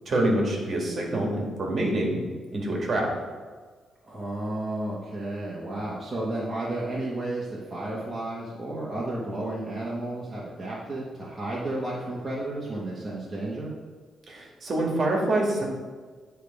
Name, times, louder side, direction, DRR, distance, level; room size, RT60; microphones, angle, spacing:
voice 1, 0.1-2.2 2.5-3.1 14.3-15.6, right 1 dB, 40° right, -2 dB, 1.8 m, -26 dB
voice 2, 4.0-13.7, right 1 dB, 20° right, -6 dB, 1.2 m, -32 dB
9.0 x 3.4 x 5.2 m, 1.5 s
cardioid pair, 135°, 0 cm